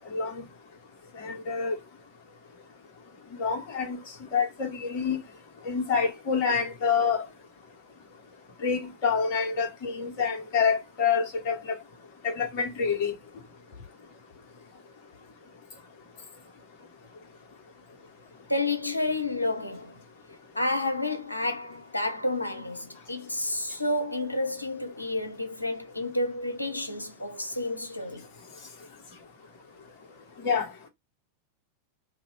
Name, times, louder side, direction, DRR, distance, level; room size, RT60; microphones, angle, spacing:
voice 1, 0.1-0.4 1.2-1.8 3.3-4.0 4.3-5.2 5.6-7.2 8.6-11.6 12.2-13.1 30.4-30.7, left 6 dB, 45° left, 1.3 m, -27 dB
voice 2, 18.5-20.0 20.6-28.3, left 2 dB, 85° left, 0.6 m, -30 dB
2.8 x 2.6 x 3.3 m
figure-of-eight pair, 90°, 0 cm